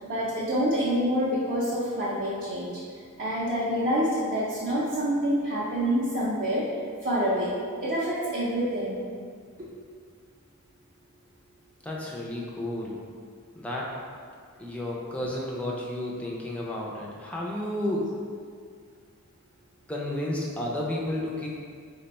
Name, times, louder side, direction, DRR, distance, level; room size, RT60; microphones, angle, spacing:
voice 1, 0.1-2.8 3.2-6.7 7.0-7.5 7.8-9.0, equal, 45° right, -8 dB, 0.5 m, -27 dB
voice 2, 11.8-13.0 13.6-14.0 14.6-18.1 19.9-21.5, left 1 dB, 5° left, -4 dB, 0.4 m, -32 dB
3.3 x 2.2 x 4.0 m, 2.1 s
head